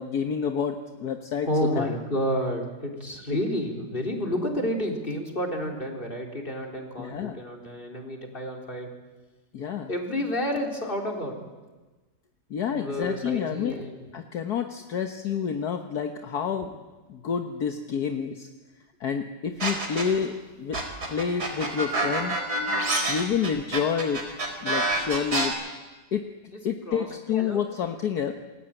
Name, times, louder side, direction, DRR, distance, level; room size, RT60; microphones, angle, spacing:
voice 1, 0.0-1.9 7.0-7.4 9.5-9.9 12.5-13.7 14.1-16.7 17.1-18.5 19.0-20.8 21.1-22.4 23.1-25.6 26.1-26.3 26.6-28.3, left 7 dB, 65° left, 5 dB, 1.7 m, -29 dB
voice 2, 1.5-8.9 9.9-11.4 12.7-14.1 26.5-27.6, equal, 30° left, 1 dB, 4.2 m, -30 dB
sound 1, 19.6-20.3 20.7-25.5, right 2 dB, 65° right, 4.9 m, -27 dB
28.0 x 22.0 x 9.1 m, 1.2 s
omnidirectional pair, 1.8 m